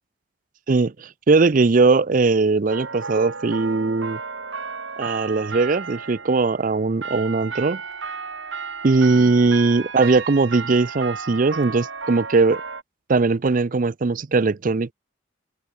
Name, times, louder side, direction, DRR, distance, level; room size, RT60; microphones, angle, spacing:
voice 1, 0.7-4.2 5.0-7.8 8.8-12.6 13.1-14.9, right 3 dB, 45° right, 0.5 m, -19 dB
sound 1, 2.7-12.8, right 5 dB, 70° right, 2.5 m, -33 dB
open air
head